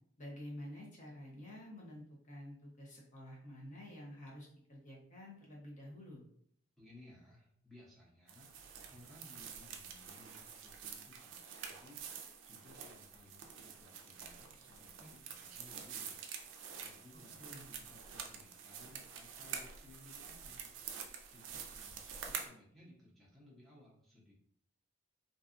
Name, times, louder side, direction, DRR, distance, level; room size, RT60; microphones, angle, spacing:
voice 1, 0.2-6.2 17.4-17.6, left 1 dB, 40° left, -3 dB, 0.8 m, -50 dB
voice 2, 6.8-8.5 8.9-16.2 16.8-20.7 21.3-24.4, left 1 dB, ahead, -6 dB, 0.7 m, -60 dB
sound 1, 8.3-22.5, right 7 dB, 65° right, 0.4 m, -48 dB
2.6 x 2.3 x 2.4 m, 0.65 s
head